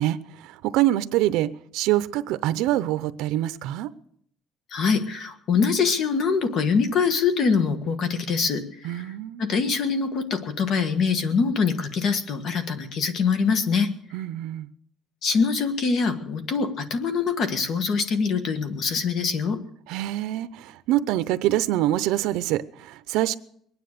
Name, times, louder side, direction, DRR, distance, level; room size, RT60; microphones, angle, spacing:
voice 1, 0.0-3.9 8.8-9.5 14.1-14.7 19.9-23.4, right 14 dB, 85° right, 0.6 m, -25 dB
voice 2, 4.7-8.6 8.9-9.0 9.4-13.9 15.2-19.6, left 5 dB, 45° left, 1.6 m, -24 dB
21.5 x 9.9 x 6.6 m
cardioid pair, 165°, 0 cm